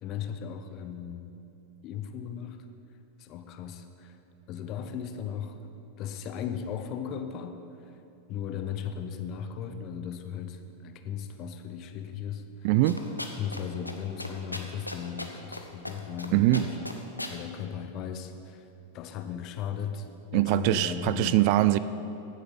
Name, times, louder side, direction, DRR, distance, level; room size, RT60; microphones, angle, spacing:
voice 1, 0.0-1.3 1.8-2.7 3.2-4.2 4.5-5.7 6.0-8.0 8.3-12.7 13.4-16.8 17.3-18.7 18.9-21.4, left 8 dB, 40° left, 8 dB, 0.8 m, -37 dB
voice 2, 12.6-13.0 16.3-16.7 20.3-21.8, right 15 dB, 45° right, 14 dB, 0.3 m, -22 dB
sound 1, 12.9-13.6 13.9-14.0 14.2-15.6 15.8-16.3 16.5-17.3, left 1 dB, 85° left, 0.7 m, -36 dB
15.0 x 7.8 x 4.0 m, 2.9 s
figure-of-eight pair, 90°, 0 cm